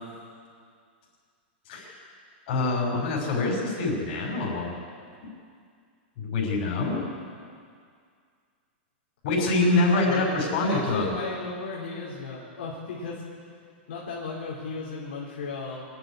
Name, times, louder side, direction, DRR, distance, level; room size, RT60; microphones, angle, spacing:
voice 1, 2.5-4.8 6.2-7.0 9.2-11.2, left 2 dB, 40° left, -2 dB, 6.3 m, -25 dB
voice 2, 10.1-13.2 13.9-15.8, left 4 dB, 65° left, -5 dB, 4.5 m, -35 dB
26.5 x 9.9 x 10.0 m, 2.2 s
supercardioid pair, 175°, 6 cm